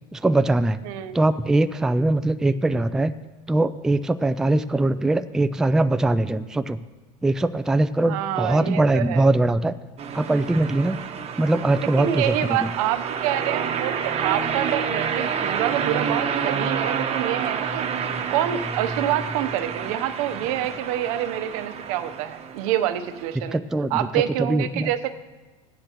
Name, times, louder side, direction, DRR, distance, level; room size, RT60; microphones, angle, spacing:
voice 1, 0.1-0.8 1.1-3.1 3.5-6.8 7.2-9.7 10.1-11.0 11.4-12.7 23.5-24.9, right 2 dB, 5° right, 11 dB, 0.3 m, -21 dB
voice 2, 0.8-1.2 2.5-2.8 8.1-9.2 12.0-23.6 23.9-25.1, right 12 dB, 75° right, 10 dB, 0.8 m, -27 dB
sound 1, 10.0-23.3, right 7 dB, 35° right, 1.0 m, -29 dB
16.5 x 10.0 x 3.0 m, 1.2 s
supercardioid pair, 105°, 19 cm